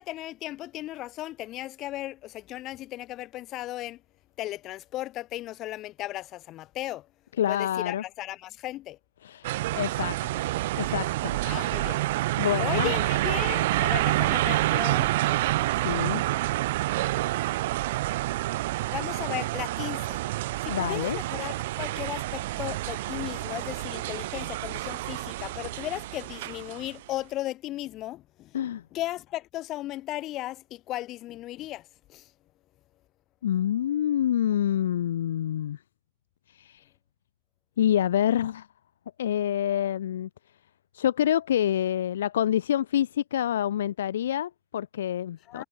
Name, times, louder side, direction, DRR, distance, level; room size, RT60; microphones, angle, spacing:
voice 1, 0.0-4.0 4.4-7.1 7.5-9.0 11.4-12.0 12.6-15.1 17.1-17.4 18.9-20.2 20.6-28.5 28.9-32.3 45.5-45.6, left 15 dB, 35° left, 5.1 m, -36 dB
voice 2, 7.4-8.0 9.2-10.5 10.7-11.9 12.4-12.9 15.8-16.2 20.7-21.2 28.5-28.8 33.4-35.8 36.5-36.8 37.8-38.7 39.2-40.3 40.9-45.6, left 10 dB, 60° left, 0.8 m, -27 dB
sound 1, 9.4-26.9, right 17 dB, 55° right, 2.0 m, -28 dB
figure-of-eight pair, 90°, 0 cm